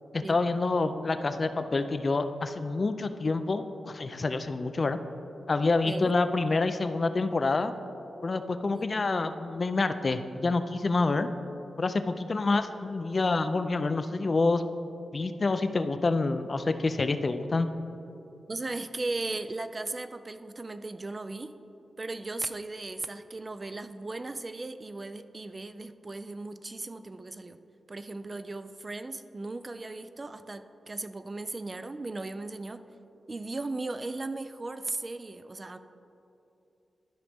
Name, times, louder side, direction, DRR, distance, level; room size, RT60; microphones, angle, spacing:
voice 1, 0.1-5.0 5.5-7.7 8.2-11.3 11.8-14.6 15.1-17.7, left 3 dB, 40° left, 10 dB, 0.4 m, -27 dB
voice 2, 18.5-21.5 22.0-27.6 27.9-32.9 33.3-35.8, right 2 dB, 30° right, 10 dB, 0.3 m, -37 dB
12.5 x 5.2 x 3.4 m, 2.9 s
cardioid pair, 85°, 0 cm